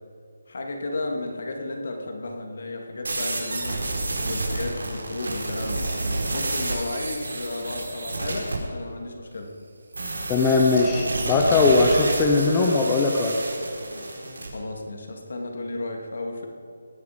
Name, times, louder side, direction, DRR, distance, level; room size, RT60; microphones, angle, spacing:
voice 1, 0.5-3.8 4.2-5.9 6.3-9.5 14.5-16.5, left 2 dB, 50° left, 2 dB, 2.5 m, -33 dB
sound 1, 3.0-8.6 9.9-14.5, right 2 dB, 90° right, 4.2 m, -30 dB
voice 2, 10.3-13.4, left 3 dB, 10° left, -1 dB, 0.7 m, -20 dB
19.5 x 9.9 x 5.2 m, 2.6 s
hypercardioid pair, 175°, 0 cm